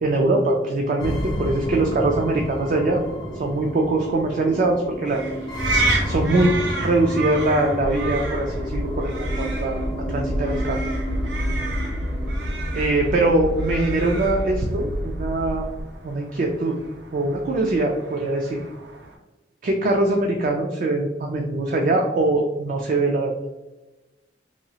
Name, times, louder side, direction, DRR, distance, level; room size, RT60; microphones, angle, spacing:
voice 1, 0.0-3.1 3.4-5.2 6.0-6.5 6.8-9.1 9.4-10.8 12.7-15.7 16.0-16.8 17.1-18.6 19.6-23.4, right 2 dB, 50° right, 1 dB, 0.3 m, -22 dB
sound 1, 1.0-15.0, equal, 25° left, 0.4 m, -32 dB
sound 2, 5.1-19.2, right 3 dB, 85° right, 0.6 m, -33 dB
sound 3, 7.8-15.8, equal, 75° left, 0.5 m, -29 dB
2.9 x 2.3 x 2.8 m, 1.1 s
head